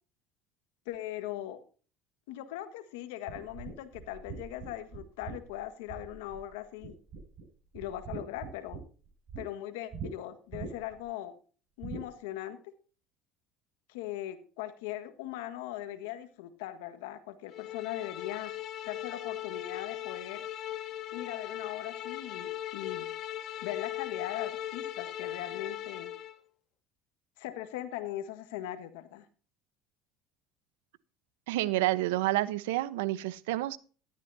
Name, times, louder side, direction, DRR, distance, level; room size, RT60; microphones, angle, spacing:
voice 1, 0.9-1.6 2.3-7.0 7.7-8.8 9.4-11.4 11.8-12.7 13.9-18.5 18.9-20.4 21.1-23.1 23.6-26.1 27.4-29.3, left 13 dB, 85° left, 11 dB, 1.6 m, -40 dB
sound 1, 3.3-6.5 6.8-7.4 7.7-9.4 9.9-10.1 10.5-11.0 11.8-12.1, right 5 dB, 45° right, 7.6 m, -42 dB
sound 2, 17.5-26.4, left 12 dB, 55° left, 1.5 m, -39 dB
voice 2, 31.5-33.8, right 16 dB, 85° right, 16 dB, 0.9 m, -29 dB
14.0 x 12.5 x 2.8 m, 0.39 s
supercardioid pair, 105°, 0 cm